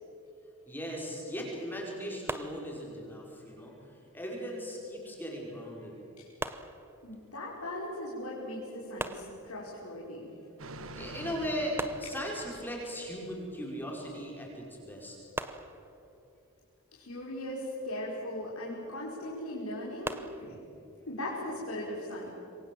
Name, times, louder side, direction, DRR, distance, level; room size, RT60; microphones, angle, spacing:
voice 1, 0.7-6.0 10.9-15.2, equal, 10° left, -2 dB, 5.0 m, -38 dB
sound 1, 2.3-3.2 6.4-7.5 9.0-10.0 11.8-12.8 15.4-16.4 20.0-20.6, right 2 dB, 10° right, 0.8 m, -40 dB
voice 2, 7.0-10.3 16.9-20.6 21.1-22.3, left 1 dB, 85° left, -5 dB, 5.2 m, -38 dB
sound 2, 10.6-13.5 13.8-13.9, right 2 dB, 65° right, 1.4 m, -46 dB
27.0 x 23.0 x 7.7 m, 2.7 s
head